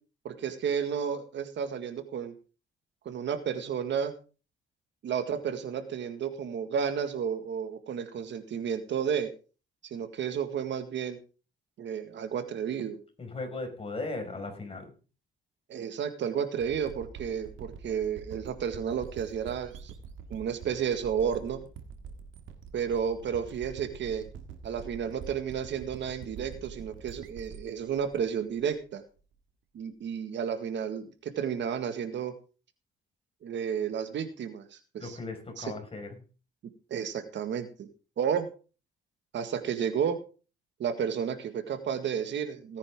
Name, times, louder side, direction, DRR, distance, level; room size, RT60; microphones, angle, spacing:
voice 1, 0.2-2.3 3.0-4.1 5.0-9.3 9.8-11.2 11.8-13.0 15.7-19.9 20.3-21.6 22.7-24.2 24.6-29.0 29.7-32.3 33.4-35.2 35.6-35.7 36.9-37.9 38.2-38.5 39.3-40.2 40.8-42.8, right 7 dB, 65° right, 9 dB, 1.9 m, -32 dB
voice 2, 13.2-14.9 35.0-36.2, left 3 dB, 30° left, 3 dB, 5.5 m, -37 dB
sound 1, 16.6-29.2, right 6 dB, 85° right, 2.0 m, -46 dB
18.0 x 9.7 x 3.7 m, 0.35 s
cardioid pair, 90°, 20 cm